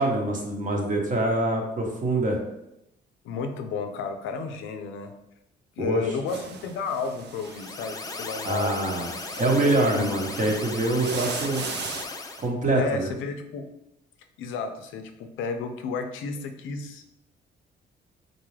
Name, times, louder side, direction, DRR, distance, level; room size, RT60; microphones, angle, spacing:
voice 1, 0.0-2.4 5.8-6.0 8.4-9.1 9.4-11.6 12.4-13.1, right 2 dB, 40° right, 0 dB, 0.9 m, -25 dB
voice 2, 3.2-5.1 5.8-9.2 9.6-10.1 12.8-13.7 14.4-17.1, left 4 dB, 85° left, 7 dB, 0.4 m, -32 dB
sound 1, 6.3-12.0, right 5 dB, 60° right, 0.5 m, -39 dB
sound 2, 7.4-12.5, left 3 dB, 20° left, 0.3 m, -37 dB
4.0 x 2.3 x 3.2 m, 0.86 s
cardioid pair, 90°, 20 cm